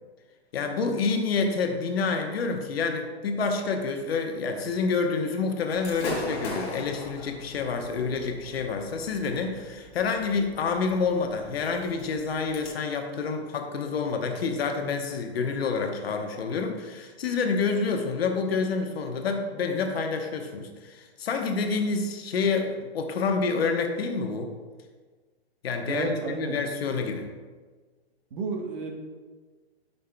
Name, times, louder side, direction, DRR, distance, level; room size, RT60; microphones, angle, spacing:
voice 1, 0.5-24.5 25.6-27.3, left 4 dB, 65° left, 4 dB, 1.0 m, -28 dB
Gunshot gunfire / Fireworks, 5.7-12.7, left 2 dB, 20° left, 1.1 m, -40 dB
voice 2, 25.8-26.6 28.3-28.9, right 3 dB, 50° right, 2 dB, 1.3 m, -31 dB
10.0 x 5.6 x 2.2 m, 1.4 s
hypercardioid pair, 150°, 33 cm